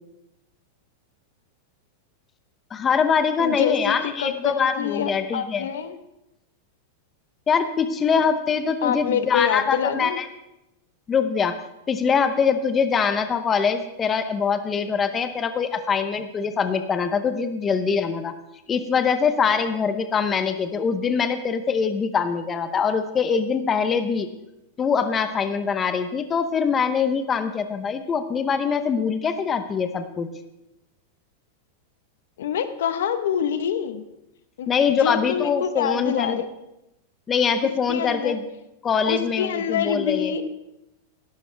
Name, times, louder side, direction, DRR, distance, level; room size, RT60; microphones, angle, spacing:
voice 1, 2.7-5.7 7.5-10.3 11.1-11.6 11.9-18.4 18.7-24.3 24.8-30.3 34.7-36.4 37.3-38.5 38.8-40.3, left 6 dB, 20° left, 9 dB, 0.7 m, -23 dB
voice 2, 3.4-5.9 8.8-10.2 32.4-34.0 34.6-36.4 37.9-38.4 39.1-40.4, left 8 dB, 80° left, 10 dB, 1.1 m, -26 dB
17.0 x 12.0 x 3.4 m, 0.90 s
supercardioid pair, 155°, 0 cm